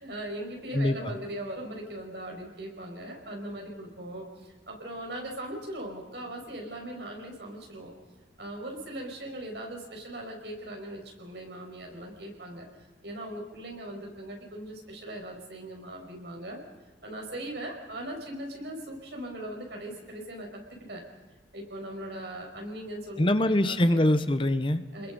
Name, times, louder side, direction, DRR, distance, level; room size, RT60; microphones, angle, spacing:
voice 1, 0.0-7.9 8.4-12.7 13.0-16.6 17.0-20.6 20.9-21.0 21.5-23.3 23.6-24.0 24.9-25.1, right 1 dB, 65° right, 1 dB, 5.9 m, -39 dB
voice 2, 0.7-1.1 23.2-24.8, left 1 dB, 25° left, 11 dB, 0.8 m, -24 dB
29.0 x 21.5 x 5.4 m, 1.2 s
head